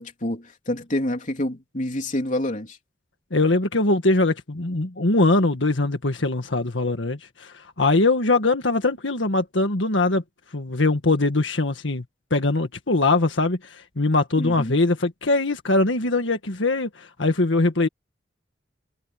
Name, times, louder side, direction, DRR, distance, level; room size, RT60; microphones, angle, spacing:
voice 1, 0.0-2.8 14.4-14.7, left 1 dB, 45° left, 3.4 m, -28 dB
voice 2, 3.3-10.2 10.5-12.0 12.3-17.9, left 2 dB, 80° left, 1.8 m, -22 dB
head